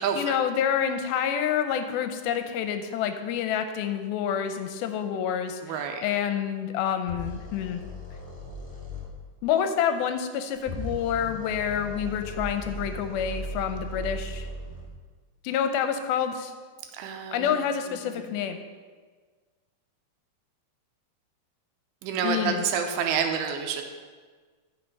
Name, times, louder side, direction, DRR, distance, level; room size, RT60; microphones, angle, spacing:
voice 1, 0.2-7.8 9.4-14.5 15.4-16.5 17.3-18.6 22.2-22.6, left 8 dB, 80° left, 8 dB, 2.4 m, -28 dB
voice 2, 5.6-6.0 17.0-17.5 18.0-18.2 22.0-23.8, right 7 dB, 85° right, 5 dB, 2.7 m, -28 dB
sound 1, 7.1-9.1 10.5-14.9, equal, 5° left, 1.0 m, -37 dB
10.0 x 5.8 x 5.3 m, 1.5 s
omnidirectional pair, 4.4 m